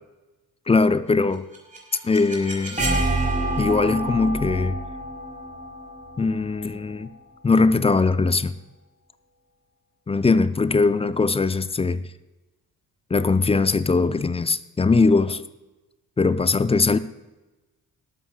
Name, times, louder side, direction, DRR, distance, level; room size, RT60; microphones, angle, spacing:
voice 1, 0.7-1.5 2.0-2.8 3.6-4.8 6.2-7.1 7.4-8.5 10.1-12.0 13.1-15.4 16.2-17.0, left 4 dB, 15° left, 0.5 m, -20 dB
sound 1, 1.3-7.2, right 2 dB, 15° right, 4.5 m, -28 dB
19.5 x 12.5 x 2.3 m
figure-of-eight pair, 40°, 47 cm